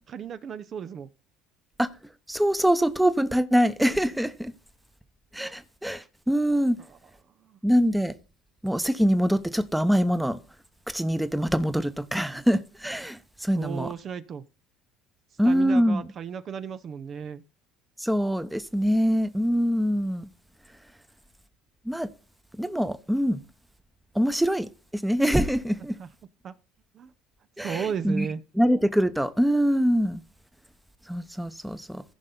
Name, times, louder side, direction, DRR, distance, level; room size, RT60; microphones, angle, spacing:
voice 1, 0.1-1.1 6.8-7.0 7.4-7.6 13.5-14.4 15.4-17.4 26.0-26.1 26.4-26.5 26.9-27.1 27.6-28.4, right 7 dB, 45° right, 0.6 m, -34 dB
voice 2, 2.3-4.5 5.3-6.8 7.6-8.1 8.6-10.4 10.9-13.9 15.4-16.1 18.0-20.3 21.9-22.1 22.6-23.4 24.1-26.0 27.6-28.3 28.5-30.2 31.1-32.0, equal, 5° right, 0.9 m, -24 dB
16.0 x 5.4 x 3.9 m
supercardioid pair, 80°, 0 cm